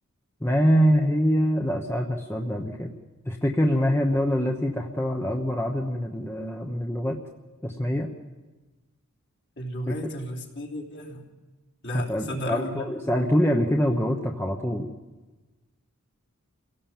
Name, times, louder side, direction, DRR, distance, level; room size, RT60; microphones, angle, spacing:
voice 1, 0.4-2.9 3.3-7.2 7.6-8.1 9.9-10.1 11.9-14.9, equal, 10° left, 1 dB, 1.1 m, -24 dB
voice 2, 9.6-11.2 11.8-12.7, left 1 dB, 50° left, -1 dB, 3.3 m, -33 dB
28.0 x 17.5 x 7.4 m, 1.2 s
head